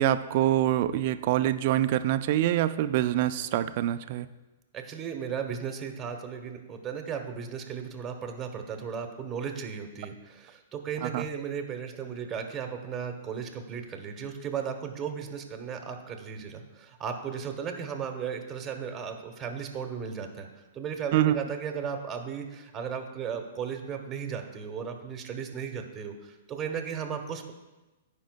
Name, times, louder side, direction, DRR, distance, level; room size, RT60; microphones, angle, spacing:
voice 1, 0.0-4.3 11.0-11.2 21.1-21.4, right 13 dB, 50° right, 12 dB, 0.4 m, -25 dB
voice 2, 4.7-20.5 20.7-27.5, right 7 dB, 20° right, 4 dB, 1.0 m, -35 dB
14.5 x 5.2 x 2.2 m, 1.1 s
hypercardioid pair, 115°, 0 cm